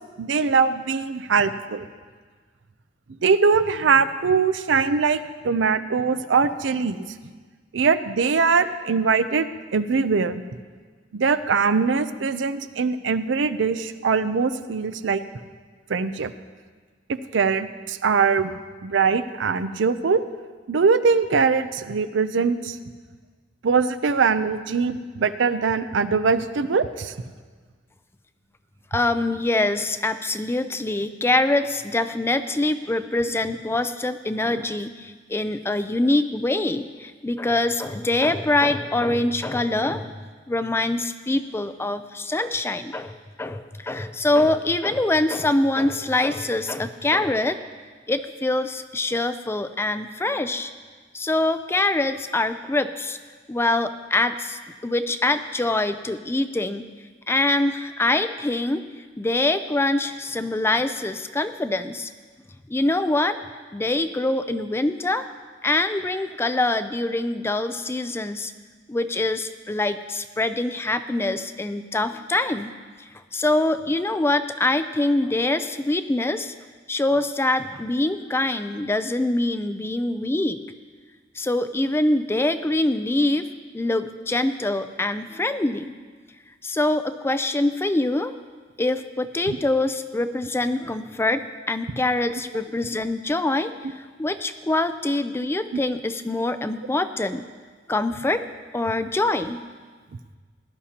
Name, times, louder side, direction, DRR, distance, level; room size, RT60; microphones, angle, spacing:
voice 1, 0.2-1.8 3.2-5.2 5.4-7.0 7.7-10.4 11.1-15.2 15.9-16.3 17.1-18.5 18.8-20.2 20.7-22.8 23.6-27.1 89.5-89.6, right 5 dB, 90° right, 12 dB, 0.5 m, -22 dB
voice 2, 28.9-40.1 40.5-47.6 48.1-50.7 51.1-53.2 53.5-56.9 57.3-58.8 59.2-62.1 62.7-63.4 63.7-65.3 65.6-68.5 68.9-72.7 73.3-76.5 76.9-80.6 81.4-83.5 83.7-85.9 86.6-88.3 88.8-97.5 97.9-98.5 98.7-99.6, left 2 dB, 15° left, 10 dB, 0.4 m, -24 dB
17.5 x 11.5 x 2.9 m, 1.5 s
head